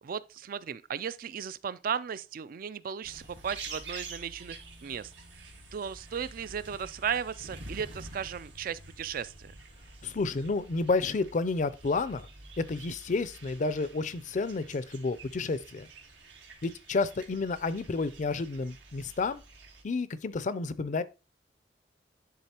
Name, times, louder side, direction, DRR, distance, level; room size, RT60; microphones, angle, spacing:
voice 1, 0.0-5.1 5.7-9.5, right 7 dB, 55° right, 0.4 m, -36 dB
sound 1, 3.0-19.8, right 3 dB, 90° right, 1.6 m, -48 dB
voice 2, 10.0-12.3 12.6-15.9 16.6-19.4 19.8-21.0, left 3 dB, 45° left, 0.4 m, -30 dB
10.5 x 3.7 x 2.9 m
head